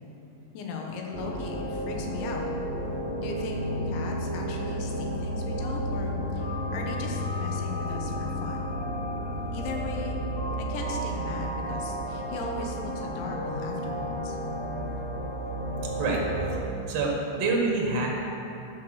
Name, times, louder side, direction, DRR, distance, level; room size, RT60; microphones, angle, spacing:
voice 1, 0.5-2.5 3.2-8.8 9.5-10.1 10.6-14.4, left 4 dB, 85° left, 0 dB, 3.6 m, -37 dB
sound 1, 1.1-16.6, equal, 35° left, 3.3 m, -32 dB
voice 2, 16.0-18.1, right 3 dB, 60° right, -1 dB, 1.7 m, -27 dB
14.5 x 6.0 x 6.3 m, 2.9 s
omnidirectional pair, 5.1 m